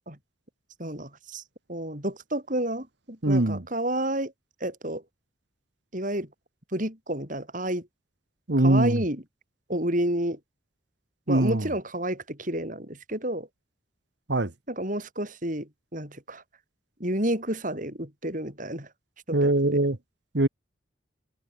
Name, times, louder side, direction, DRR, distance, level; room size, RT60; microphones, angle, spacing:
voice 1, 0.8-1.4 1.7-4.3 4.6-5.0 5.9-6.3 6.7-7.9 8.6-9.2 9.7-10.4 11.3-13.5 14.7-16.4 17.0-18.9 19.3-19.5, right 1 dB, 40° right, 7.9 m, -30 dB
voice 2, 3.2-3.7 8.5-9.0 11.3-11.7 14.3-14.5 19.3-20.0 20.3-20.5, right 1 dB, 60° right, 1.5 m, -22 dB
head